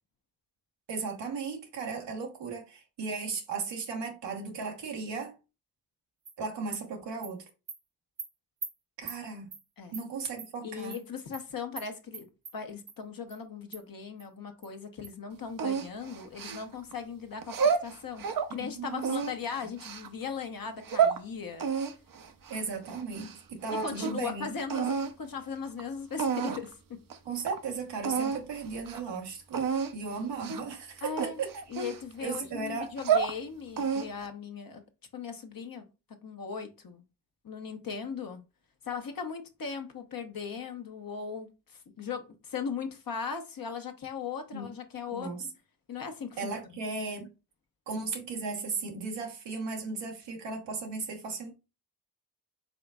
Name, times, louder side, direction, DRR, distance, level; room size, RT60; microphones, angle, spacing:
voice 1, 0.9-5.3 6.4-7.4 9.0-9.5 9.9-11.0 18.5-19.1 22.5-24.6 27.2-31.5 32.2-32.9 44.5-44.7 45.1-45.4 46.4-47.3 47.9-51.5, right 4 dB, 90° right, 1.2 m, -36 dB
Animal, 6.2-6.3 6.7-6.8 7.2-7.3 7.7-7.8 8.2-8.3 8.6-8.7 9.1-9.2 9.5-9.6 9.9-10.0 10.4-10.5 10.9-11.0 11.3-11.4 11.8-11.9 12.1-12.5 12.9-13.0 13.3-13.4 13.7-13.8 14.2-14.3 14.6-14.7 15.0-15.1, right 5 dB, 75° right, 1.7 m, -41 dB
voice 2, 10.6-12.3 12.5-21.7 23.7-27.0 31.0-31.4 31.7-34.8 35.1-35.8 36.2-37.0 37.4-38.4 38.8-45.5 45.9-46.8, left 6 dB, 55° left, 1.1 m, -38 dB
sound 1, 15.6-16.9 17.4-18.5 19.0-20.1 20.6-21.2 21.6-23.4 23.6-24.3 24.7-25.1 25.8-25.9 26.2-26.7 27.1-27.2 27.5-27.6 28.0-28.4 28.8-29.0 29.5-29.9 30.4-30.7 31.2-32.4 32.8-33.3 33.8-34.3, right 6 dB, 55° right, 0.7 m, -30 dB
4.9 x 3.8 x 2.3 m
cardioid pair, 50°, 41 cm